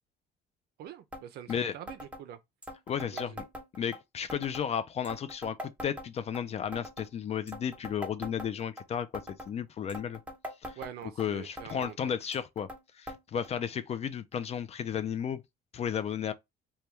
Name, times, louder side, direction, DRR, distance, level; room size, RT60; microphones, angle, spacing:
voice 1, 0.8-2.4 3.1-3.4 10.8-12.2, right 10 dB, 70° right, 0.4 m, -45 dB
sound 1, 1.1-1.2 1.5-1.6 1.9-2.2 2.6-4.0 4.3-4.7 5.0-6.4 6.7-7.1 7.5-8.8 9.1-9.5 9.9-11.3 11.6-11.9 12.3-12.8 13.1-13.2 13.4-13.5 14.3-14.4 15.2-15.3, left 1 dB, 5° right, 0.9 m, -42 dB
voice 2, 2.9-3.4 3.8-10.2 10.6-10.8 11.2-12.7 12.9-15.4 15.7-16.3, left 8 dB, 40° left, 0.3 m, -33 dB
2.9 x 2.2 x 3.3 m
cardioid pair, 110°, 17 cm